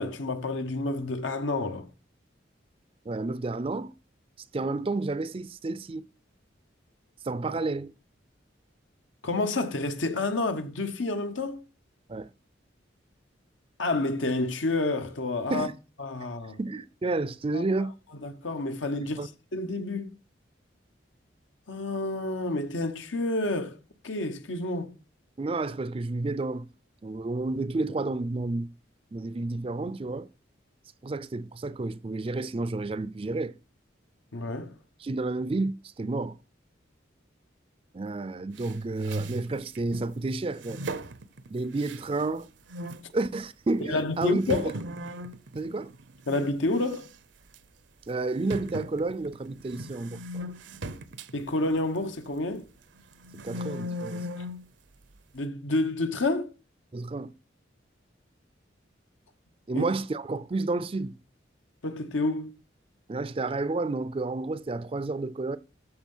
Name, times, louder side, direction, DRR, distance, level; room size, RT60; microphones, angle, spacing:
voice 1, 0.0-1.9 9.2-11.6 13.8-15.7 16.0-16.6 17.5-17.6 18.1-20.1 21.7-23.8 24.0-25.0 34.3-34.8 43.9-44.7 46.3-47.1 51.3-52.7 55.3-56.5 59.7-59.8 61.8-62.5, left 2 dB, 85° left, 1.2 m, -29 dB
voice 2, 3.1-3.9 4.5-6.0 7.2-7.9 12.1-12.3 15.5-15.7 16.6-18.0 19.0-19.3 25.4-26.7 27.0-28.7 29.1-30.3 31.0-33.5 35.0-36.4 37.9-40.8 41.5-42.5 43.1-44.7 45.5-45.9 48.1-50.4 53.3-54.3 56.9-57.3 59.7-61.2 63.1-65.6, right 3 dB, 30° right, 0.4 m, -30 dB
sound 1, 38.6-40.1 40.6-42.4 42.7-43.1 43.7-43.8 44.2-46.5 46.8-47.2 47.5-47.6 48.5-52.5 53.0-54.7, right 1 dB, 75° right, 0.7 m, -38 dB
13.5 x 4.6 x 5.5 m
head